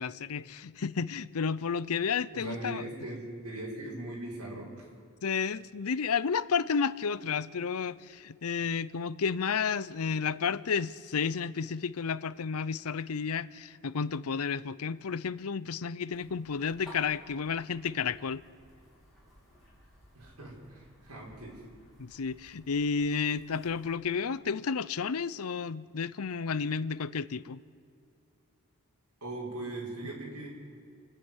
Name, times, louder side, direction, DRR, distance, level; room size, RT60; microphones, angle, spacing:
voice 1, 0.0-2.8 5.2-18.4 22.0-27.6, left 6 dB, 80° left, 18 dB, 0.6 m, -31 dB
voice 2, 2.3-4.9 20.1-21.6 29.2-30.5, right 2 dB, 80° right, -4 dB, 6.3 m, -40 dB
sound 1, 16.1-24.0, equal, ahead, 5.9 m, -57 dB
29.0 x 10.0 x 9.8 m, 2.4 s
head